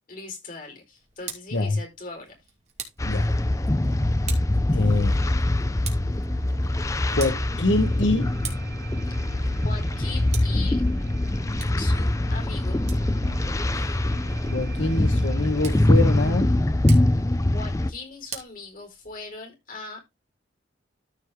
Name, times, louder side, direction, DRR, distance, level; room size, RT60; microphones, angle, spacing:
voice 1, 0.1-2.3 9.6-10.8 11.8-12.9 17.5-20.0, left 3 dB, 50° left, 4.0 m, -39 dB
Tick, 0.9-19.4, right 7 dB, 40° right, 2.4 m, -45 dB
sound 1, 3.0-17.9, left 1 dB, 15° left, 0.5 m, -23 dB
voice 2, 4.7-5.2 7.1-8.3 13.7-14.0 14.5-16.5, left 2 dB, 90° left, 1.1 m, -25 dB
sound 2, 5.4-16.4, right 2 dB, 60° right, 0.8 m, -41 dB
13.5 x 4.7 x 3.5 m
head